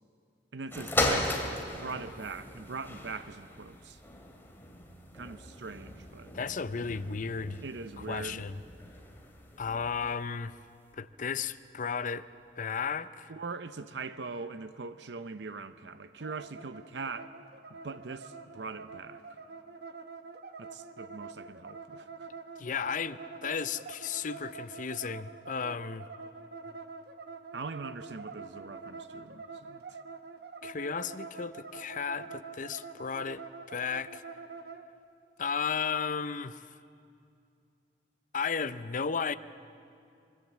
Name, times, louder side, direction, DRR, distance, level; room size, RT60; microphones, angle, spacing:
voice 1, 0.5-1.4 1.7-4.0 5.1-6.3 7.6-8.4 13.3-17.3 17.7-19.2 20.6-22.3 27.5-30.0, right 4 dB, 80° right, 0.7 m, -41 dB
sound 1, 0.7-10.2 10.9-11.0, left 1 dB, 15° left, 2.6 m, -37 dB
voice 2, 6.3-7.6 8.1-8.6 9.6-10.6 10.9-12.3 12.6-13.3 22.6-26.1 30.6-34.2 35.4-36.7 38.3-39.3, left 6 dB, 50° left, 0.6 m, -34 dB
sound 2, 16.2-34.8, right 4 dB, 65° right, 1.1 m, -46 dB
24.5 x 22.5 x 7.4 m
head